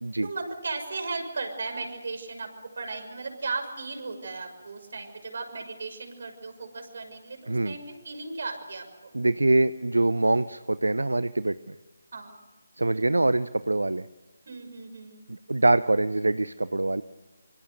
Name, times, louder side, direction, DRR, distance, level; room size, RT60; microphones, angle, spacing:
voice 1, 0.2-2.5 2.8-9.1 12.1-12.4 12.9-13.3 14.5-15.2, right 3 dB, 55° right, 6 dB, 6.1 m, -36 dB
voice 2, 9.1-11.7 12.8-14.1 15.5-17.0, right 2 dB, 75° right, 16 dB, 0.8 m, -24 dB
26.0 x 25.0 x 6.7 m, 1.2 s
figure-of-eight pair, 155°, 0 cm